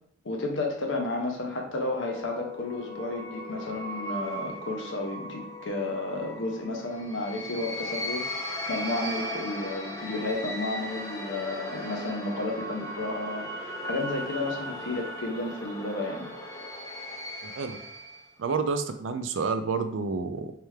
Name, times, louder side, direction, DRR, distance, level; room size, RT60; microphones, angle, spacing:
voice 1, 0.2-16.3, left 2 dB, 65° left, 1 dB, 0.8 m, -32 dB
sound 1, 1.5-18.3, equal, 15° left, 0.6 m, -37 dB
voice 2, 17.4-17.8 18.4-20.5, right 4 dB, 70° right, 8 dB, 0.4 m, -29 dB
3.3 x 3.3 x 3.2 m, 0.65 s
head